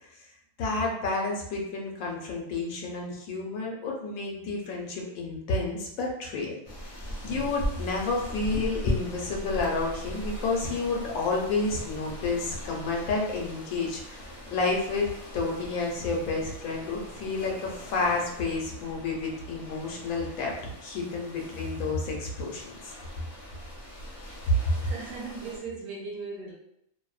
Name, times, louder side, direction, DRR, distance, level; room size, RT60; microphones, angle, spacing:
voice 1, 0.6-6.5 7.2-14.2 14.5-20.6 20.8-22.9, left 3 dB, 80° left, -1 dB, 1.1 m, -30 dB
sound 1, 6.6-25.6, left 1 dB, 45° left, 0.6 m, -39 dB
voice 2, 24.8-26.5, right 4 dB, 60° right, -3 dB, 0.9 m, -38 dB
2.6 x 2.0 x 2.3 m, 0.79 s
omnidirectional pair, 1.4 m